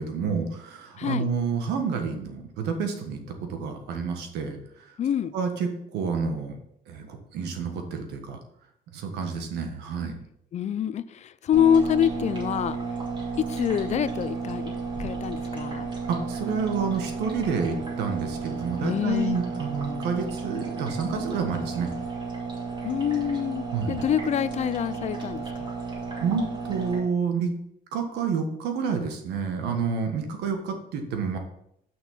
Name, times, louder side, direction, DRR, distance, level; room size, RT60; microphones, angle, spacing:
voice 1, 0.0-4.6 5.3-6.5 6.9-8.4 8.9-10.2 16.1-21.9 23.7-24.0 26.2-27.5 27.9-31.4, right 5 dB, 80° right, 5 dB, 1.5 m, -29 dB
voice 2, 5.0-5.3 10.5-12.8 13.4-15.9 18.8-19.4 22.8-25.7, left 9 dB, 40° left, 16 dB, 0.5 m, -26 dB
sound 1, 11.5-27.0, right 4 dB, 30° right, 2.7 m, -33 dB
6.3 x 6.0 x 5.6 m, 0.76 s
cardioid pair, 110°, 17 cm